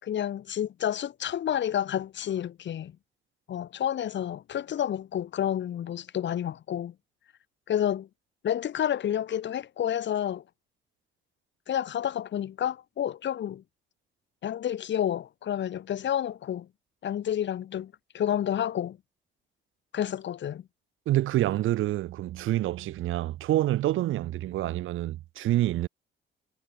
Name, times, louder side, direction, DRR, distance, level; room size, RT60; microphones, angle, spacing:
voice 1, 0.0-2.9 3.5-6.9 7.7-8.1 8.4-10.4 11.7-13.6 14.4-16.7 17.0-19.0 19.9-20.6, left 10 dB, 65° left, 5.3 m, -30 dB
voice 2, 21.0-25.9, right 14 dB, 85° right, 3.4 m, -27 dB
cardioid pair, 90°, 20 cm